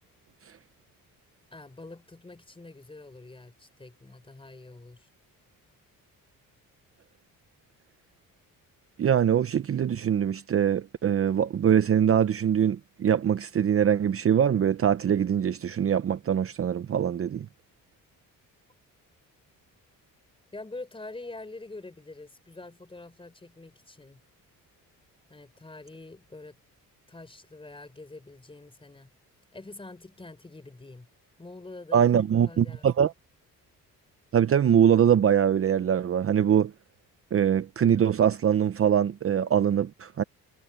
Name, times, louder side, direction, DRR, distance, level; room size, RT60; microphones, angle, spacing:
voice 1, 1.5-5.1 20.5-24.2 25.3-26.6 27.1-29.1 29.5-31.1 31.4-32.9, left 2 dB, 15° left, 4.4 m, -45 dB
voice 2, 9.0-17.5 31.9-33.1 34.3-36.7 37.3-40.2, right 9 dB, 40° right, 0.8 m, -23 dB
cardioid pair, 115°, 34 cm